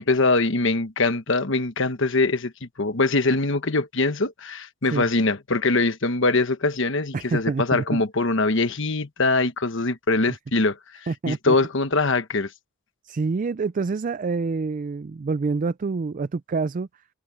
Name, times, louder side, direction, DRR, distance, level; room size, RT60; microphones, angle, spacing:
voice 1, 0.0-10.8 11.3-12.5, left 3 dB, 60° left, 1.2 m, -23 dB
voice 2, 7.1-8.0 11.1-11.6 13.0-16.9, right 4 dB, 40° right, 0.4 m, -27 dB
head